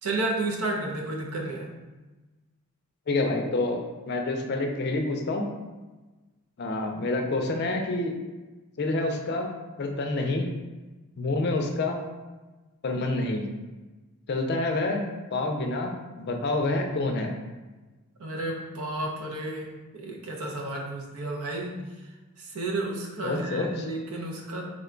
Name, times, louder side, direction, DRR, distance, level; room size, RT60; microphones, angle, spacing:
voice 1, 0.0-1.7 18.2-21.7 22.4-24.7, right 2 dB, 75° right, 0 dB, 0.7 m, -32 dB
voice 2, 3.1-3.8 4.1-5.5 6.6-8.2 8.8-9.5 9.8-10.5 11.2-12.0 12.8-13.5 14.3-17.3 23.2-23.9, left 2 dB, 45° left, 3 dB, 0.4 m, -28 dB
3.7 x 2.2 x 3.7 m, 1.2 s
head